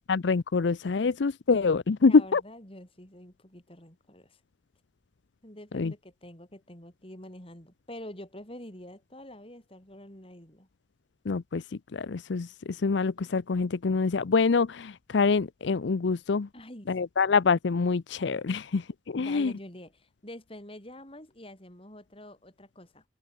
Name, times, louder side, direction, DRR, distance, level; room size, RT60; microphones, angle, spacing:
voice 1, 0.1-2.4 5.7-5.9 11.3-11.6 11.9-16.5 16.9-19.5, left 4 dB, 80° left, 0.6 m, -25 dB
voice 2, 2.0-4.4 5.4-10.7 16.5-16.9 18.5-18.6 19.1-23.0, left 1 dB, 30° left, 6.3 m, -46 dB
open air
head